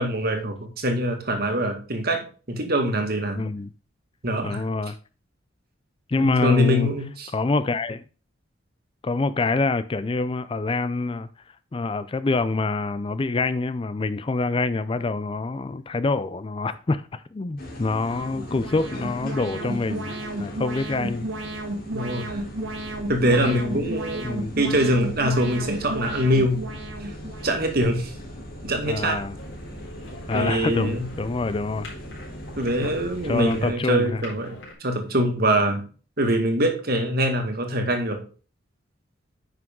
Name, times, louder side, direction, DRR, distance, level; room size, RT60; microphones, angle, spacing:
voice 1, 0.0-3.4 4.2-4.6 6.2-7.3 21.9-22.4 23.1-24.3 24.6-26.6 27.0-27.2 27.4-28.1 28.6-29.2 30.3-31.0 32.6-35.8 36.2-38.2, equal, 50° right, 1.9 m, -24 dB
voice 2, 3.4-3.7 4.4-5.0 6.1-6.9 7.3-8.0 9.0-11.3 11.7-21.3 23.3-23.9 24.2-24.5 28.9-29.3 30.3-31.9 33.3-34.2, left 3 dB, 25° left, 0.4 m, -26 dB
sound 1, 17.6-33.7, equal, 45° left, 3.2 m, -39 dB
Alarm, 18.0-27.8, right 1 dB, 80° right, 1.7 m, -33 dB
sound 2, 29.3-34.7, left 2 dB, 75° left, 4.1 m, -44 dB
9.4 x 6.1 x 3.7 m
head